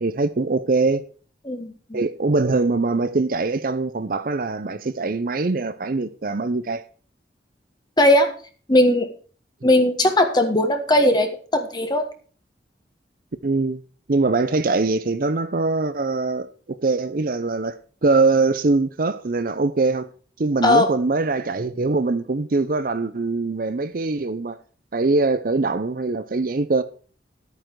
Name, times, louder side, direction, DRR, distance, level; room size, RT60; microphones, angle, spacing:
voice 1, 0.0-1.1 1.9-6.8 13.4-13.8 14.1-20.1 20.4-24.6 24.9-26.8, right 3 dB, 55° right, 0.6 m, -22 dB
voice 2, 1.4-2.0 8.0-8.3 8.7-9.1 9.6-12.0 20.6-20.9, left 1 dB, 25° left, 1.4 m, -18 dB
11.5 x 9.0 x 4.6 m
head